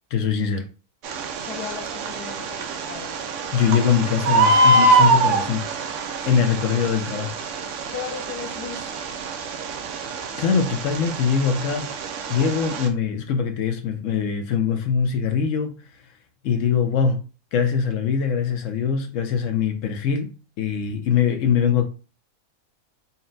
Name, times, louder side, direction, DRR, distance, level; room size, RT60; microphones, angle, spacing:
voice 1, 0.1-0.7 3.5-5.6 6.3-7.3 10.4-11.9 12.3-15.8 16.4-17.2 17.5-21.9, left 7 dB, 65° left, 0.8 m, -22 dB
Bird, 1.0-12.9, right 2 dB, 65° right, 0.8 m, -24 dB
voice 2, 1.5-3.4 7.9-8.9, left 8 dB, 85° left, 1.2 m, -36 dB
4.1 x 2.1 x 3.8 m
omnidirectional pair, 1.6 m